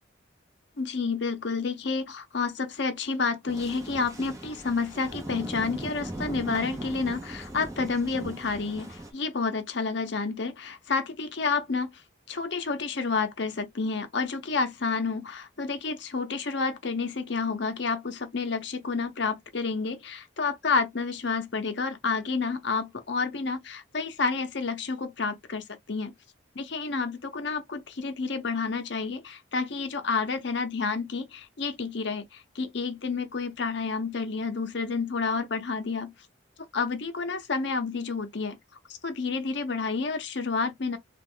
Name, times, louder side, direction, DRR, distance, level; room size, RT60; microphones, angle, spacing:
voice 1, 0.8-12.0 12.3-26.1 26.5-36.1 36.7-38.6 39.0-41.0, left 4 dB, 60° left, 0.7 m, -30 dB
sound 1, 3.5-9.1, right 1 dB, 15° right, 0.9 m, -39 dB
3.0 x 2.4 x 3.7 m
head